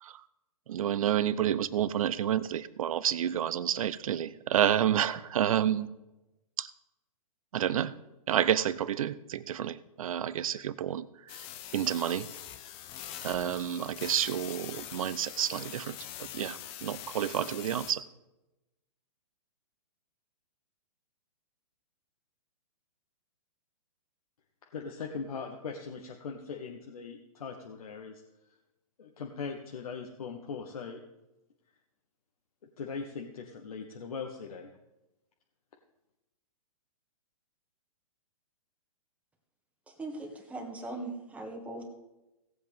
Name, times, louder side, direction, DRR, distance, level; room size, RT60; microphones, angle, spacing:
voice 1, 0.7-5.9 6.6-6.7 7.5-7.9 8.3-11.0 11.3-11.4 11.7-12.3 13.2-18.0, right 10 dB, 65° right, 17 dB, 0.6 m, -29 dB
sound 1, 11.3-17.9, left 11 dB, 30° left, 0.9 m, -43 dB
voice 2, 24.7-28.2 29.0-31.0 32.8-34.7, left 5 dB, 75° left, 2 dB, 1.2 m, -40 dB
voice 3, 39.9-41.9, right 2 dB, 5° right, 2 dB, 1.8 m, -40 dB
17.0 x 7.8 x 3.6 m, 0.97 s
hypercardioid pair, 130°, 19 cm